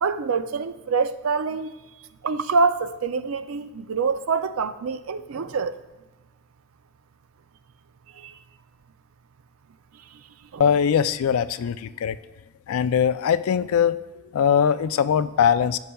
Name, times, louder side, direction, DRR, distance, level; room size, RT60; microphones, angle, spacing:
voice 1, 0.0-1.7 2.2-5.8 8.1-8.3 10.1-10.2 10.5-10.6, right 4 dB, 75° right, 0.4 m, -25 dB
voice 2, 10.6-12.2 12.7-14.0 14.3-15.8, left 8 dB, 80° left, 0.3 m, -21 dB
15.0 x 5.7 x 2.3 m
head